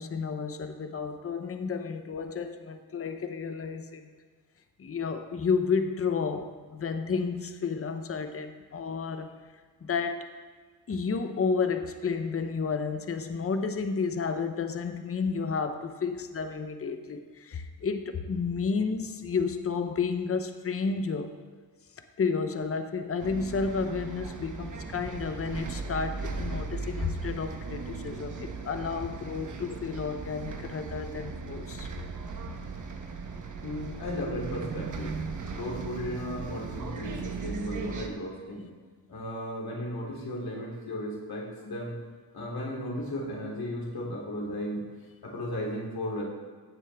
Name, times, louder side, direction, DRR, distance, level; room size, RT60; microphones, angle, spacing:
voice 1, 0.0-4.1 4.8-9.4 9.8-10.3 10.9-21.3 22.2-31.9, left 5 dB, 35° left, 8 dB, 0.8 m, -31 dB
Bus, 23.2-38.1, right 4 dB, 50° right, 1.2 m, -37 dB
voice 2, 33.6-35.1 35.5-38.7 39.1-41.9 42.3-44.8 45.2-46.2, left 1 dB, 65° left, -3 dB, 3.2 m, -35 dB
15.5 x 7.2 x 3.5 m, 1.5 s
cardioid pair, 85°, 39 cm